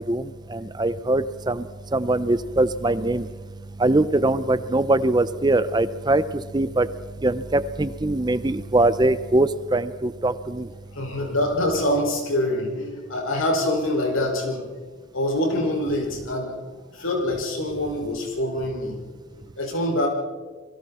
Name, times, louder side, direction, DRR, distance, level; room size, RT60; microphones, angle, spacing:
voice 1, 0.0-1.7 1.9-3.3 3.8-6.2 6.5-6.9 7.2-10.7, right 2 dB, 20° right, 14 dB, 0.5 m, -22 dB
voice 2, 10.9-14.7 15.1-16.6 16.9-19.0 19.6-20.1, left 1 dB, 75° left, 1 dB, 5.6 m, -25 dB
29.0 x 22.0 x 4.3 m, 1.4 s
head